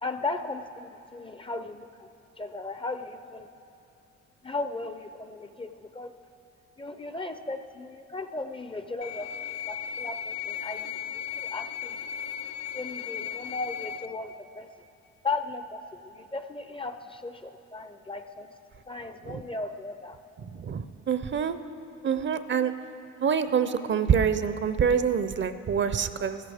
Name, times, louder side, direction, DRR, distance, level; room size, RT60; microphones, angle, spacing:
voice 1, 0.0-2.1 2.4-3.5 4.4-6.1 6.8-9.3 9.7-11.9 12.7-14.7 15.2-18.5 18.9-20.2, left 3 dB, 20° left, 8 dB, 0.5 m, -36 dB
sound 1, 9.0-14.1, left 9 dB, 65° left, 0.5 m, -36 dB
voice 2, 20.6-21.5 22.0-22.7 23.2-26.4, right 7 dB, 40° right, 11 dB, 0.5 m, -26 dB
16.0 x 14.0 x 3.5 m, 2.7 s
cardioid pair, 90°, 30 cm